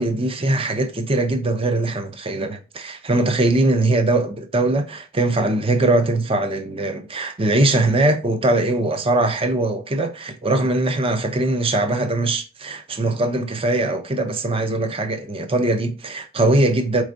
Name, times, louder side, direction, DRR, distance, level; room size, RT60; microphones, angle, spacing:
voice 1, 0.0-17.0, right 2 dB, 25° right, 0.6 m, -21 dB
4.7 x 4.2 x 2.6 m
head